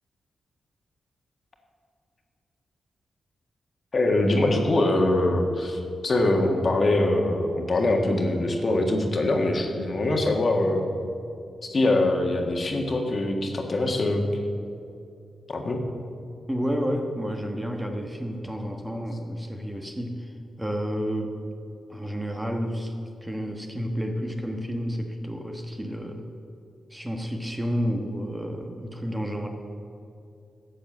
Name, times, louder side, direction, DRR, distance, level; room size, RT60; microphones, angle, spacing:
voice 1, 3.9-10.9 11.7-14.2 15.5-15.8, left 2 dB, 45° left, 2 dB, 1.7 m, -23 dB
voice 2, 16.5-20.3 20.6-21.4 21.9-22.9 23.2-26.3 26.9-29.5, equal, 10° right, 2 dB, 1.2 m, -30 dB
12.0 x 7.8 x 7.5 m, 2.5 s
cardioid pair, 100°, 0 cm